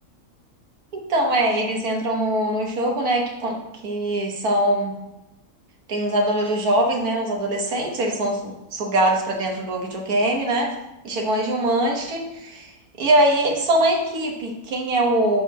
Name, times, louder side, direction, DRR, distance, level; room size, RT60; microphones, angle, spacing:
voice 1, 0.9-5.0 5.9-10.7 11.0-12.7 13.0-15.4, right 1 dB, 90° right, 1 dB, 1.7 m, -22 dB
6.5 x 4.1 x 5.8 m, 0.94 s
omnidirectional pair, 1.5 m